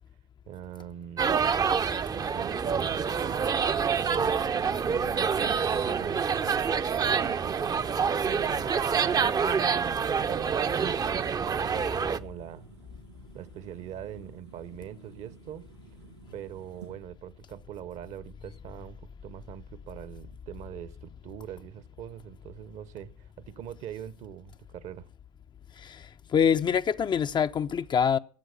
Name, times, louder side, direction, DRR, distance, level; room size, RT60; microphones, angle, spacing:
voice 1, 0.5-1.3 2.3-4.5 4.8-5.0 5.3-7.9 8.9-9.4 10.3-11.3 11.7-12.7 13.3-15.7 16.3-25.1, right 10 dB, 50° right, 0.9 m, -43 dB
sound 1, 1.2-12.2, right 6 dB, 25° right, 0.6 m, -27 dB
sound 2, 4.2-17.0, right 5 dB, 80° right, 3.2 m, -52 dB
voice 2, 26.3-28.2, left 7 dB, 30° left, 0.5 m, -25 dB
12.5 x 7.7 x 6.7 m
figure-of-eight pair, 60°, 14 cm